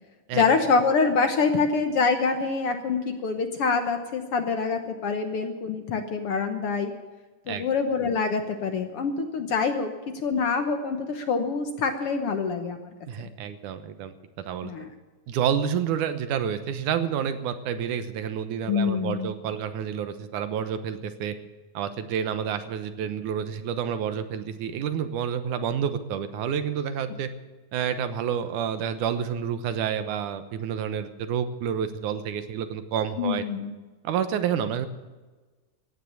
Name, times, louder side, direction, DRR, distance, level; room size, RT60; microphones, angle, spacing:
voice 1, 0.3-6.9 7.5-12.9 13.2-13.3 14.6-14.9 18.7-19.3 33.2-33.7, left 5 dB, 60° left, 6 dB, 1.7 m, -25 dB
voice 2, 13.1-14.7 15.3-21.4 21.7-27.3 27.7-33.4 34.0-34.9, right 8 dB, 80° right, 10 dB, 2.5 m, -29 dB
16.0 x 9.5 x 8.6 m, 1.3 s
omnidirectional pair, 3.5 m